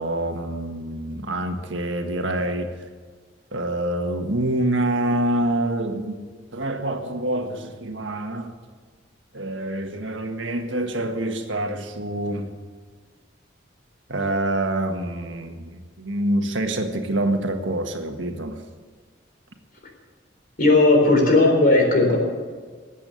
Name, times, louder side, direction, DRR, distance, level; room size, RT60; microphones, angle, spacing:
voice 1, 0.0-2.7 3.5-6.2 6.5-8.5 9.3-12.5 14.1-18.6, right 1 dB, 90° right, 5 dB, 1.7 m, -26 dB
voice 2, 20.6-22.2, left 2 dB, 50° left, 2 dB, 4.0 m, -16 dB
20.0 x 8.5 x 7.0 m, 1.5 s
head